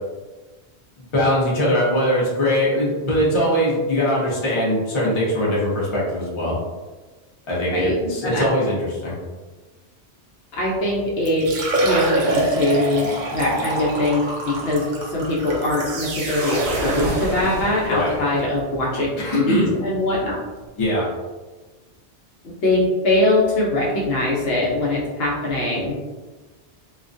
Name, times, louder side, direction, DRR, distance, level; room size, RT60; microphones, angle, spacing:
voice 1, 1.1-6.6 7.5-9.1 17.9-18.1 19.2-19.7 20.8-21.0, equal, 30° left, -6 dB, 0.7 m, -21 dB
voice 2, 7.7-8.4 10.6-11.5 11.8-13.1 13.3-20.3 22.4-26.0, left 1 dB, 65° left, -5 dB, 0.8 m, -22 dB
Liquid, 11.2-17.1 17.8-17.9 18.4-18.5 20.1-20.2 20.4-20.5, right 1 dB, 55° right, 0.6 m, -25 dB
sound 1, 15.6-18.4, right 1 dB, 85° right, 0.9 m, -28 dB
2.4 x 2.1 x 2.5 m, 1.2 s
omnidirectional pair, 1.1 m